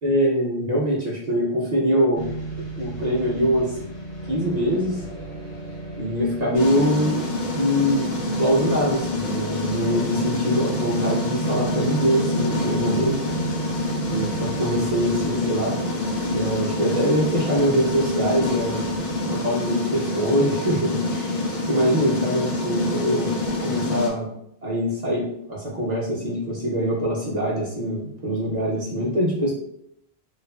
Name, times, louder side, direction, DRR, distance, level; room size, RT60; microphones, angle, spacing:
voice 1, 0.0-2.2 2.8-3.8 4.3-5.0 6.0-7.2 7.5-13.2 14.1-15.7 16.3-18.8 19.3-21.4 21.7-23.3 23.6-24.3 24.6-29.5, equal, 50° right, -5 dB, 0.6 m, -23 dB
sound 1, 2.1-19.2, right 3 dB, 70° left, 1.0 m, -34 dB
sound 2, 6.5-24.1, left 2 dB, 50° left, 0.6 m, -27 dB
2.6 x 2.4 x 2.2 m, 0.77 s
omnidirectional pair, 1.1 m